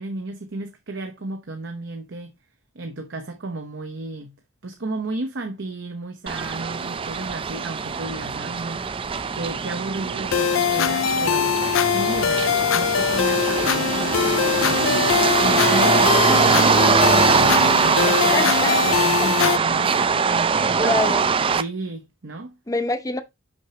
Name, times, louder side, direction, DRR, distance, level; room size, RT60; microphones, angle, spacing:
voice 1, 0.0-2.3 2.7-4.4 4.6-8.8 9.3-16.8 17.1-21.0 21.6-22.6, right 2 dB, 65° right, 0.9 m, -33 dB
sound 1, 6.3-21.6, right 5 dB, 25° right, 0.4 m, -22 dB
sound 2, 10.3-19.6, left 8 dB, 80° left, 0.4 m, -22 dB
voice 2, 18.3-18.8 19.2-19.3 20.5-21.3 22.7-23.2, left 2 dB, 15° left, 0.7 m, -26 dB
6.3 x 5.9 x 2.8 m
head